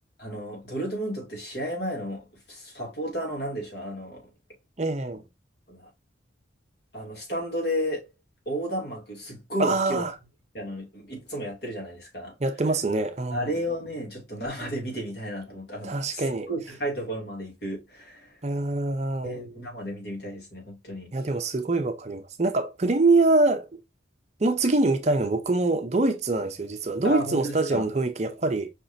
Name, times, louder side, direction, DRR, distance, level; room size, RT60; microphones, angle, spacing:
voice 1, 0.2-4.3 5.7-5.9 6.9-8.1 8.5-10.0 10.5-12.3 13.3-16.2 16.5-18.4 19.2-21.1 27.0-27.8, equal, 60° left, 2.3 m, -33 dB
voice 2, 4.8-5.2 9.6-10.1 12.4-13.5 15.8-16.5 18.4-19.4 21.1-23.7 24.4-28.7, right 2 dB, 35° right, 0.6 m, -24 dB
5.0 x 3.5 x 2.6 m
head